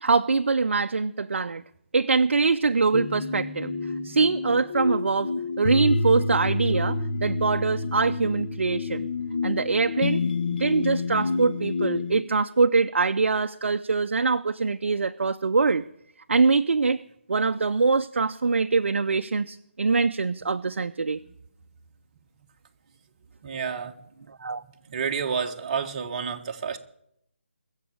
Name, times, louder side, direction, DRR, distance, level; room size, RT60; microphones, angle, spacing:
voice 1, 0.0-1.6 1.9-3.7 4.0-9.1 9.4-10.2 10.6-15.9 16.3-17.0 17.3-21.2 24.4-24.6, right 4 dB, 70° right, 9 dB, 0.6 m, -23 dB
sound 1, 2.9-12.2, left 3 dB, 45° left, 1.1 m, -29 dB
voice 2, 23.4-23.9 24.9-26.8, right 6 dB, 30° right, 4 dB, 1.3 m, -29 dB
21.5 x 7.3 x 8.6 m, 0.77 s
figure-of-eight pair, 160°, 7 cm